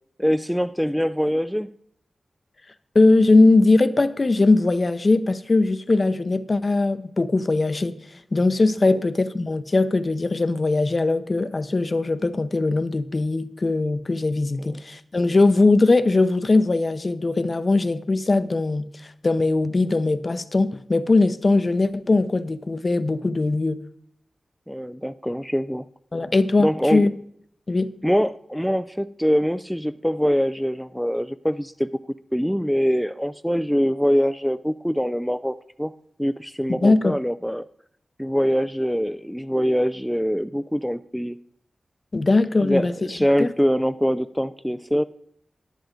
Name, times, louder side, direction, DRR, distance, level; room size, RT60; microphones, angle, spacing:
voice 1, 0.2-1.7 14.6-14.8 24.7-25.9 26.6-27.0 28.0-31.9 32.3-35.9 36.2-37.7 38.2-41.4 42.6-45.0, equal, ahead, 0.3 m, -23 dB
voice 2, 2.9-8.0 8.3-18.8 19.2-23.8 26.1-27.1 27.7-27.9 36.7-37.1 42.1-42.9 43.4-43.5, left 3 dB, 45° left, 0.6 m, -20 dB
10.5 x 10.0 x 3.8 m
cardioid pair, 60°, 0 cm